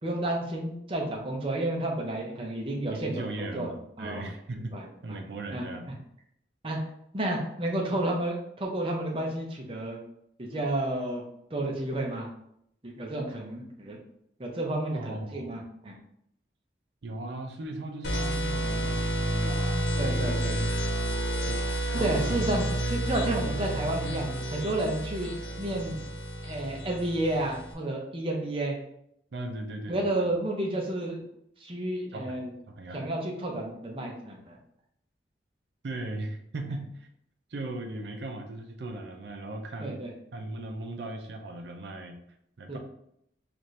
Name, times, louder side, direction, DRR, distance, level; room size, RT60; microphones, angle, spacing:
voice 1, 0.0-3.7 4.0-4.2 4.7-5.2 5.5-5.6 6.6-6.8 7.1-10.0 10.4-11.2 11.5-12.3 12.8-14.0 14.4-15.9 20.0-20.6 22.0-25.3 25.6-26.0 26.4-28.8 29.9-31.2 31.6-32.5 32.9-34.6 39.8-40.1 42.7-42.8, right 1 dB, 30° right, 0 dB, 0.6 m, -31 dB
voice 2, 2.9-4.7 5.0-5.9 14.9-15.6 17.0-20.0 20.3-20.7 21.4-21.6 21.9-22.4 29.3-30.3 32.1-32.4 32.7-33.1 35.8-37.1 37.5-40.0 40.3-42.2 42.6-42.8, right 2 dB, 75° right, 4 dB, 0.5 m, -38 dB
sound 1, 18.0-27.7, right 1 dB, 85° left, 0.6 m, -30 dB
4.2 x 2.5 x 3.1 m, 0.74 s
head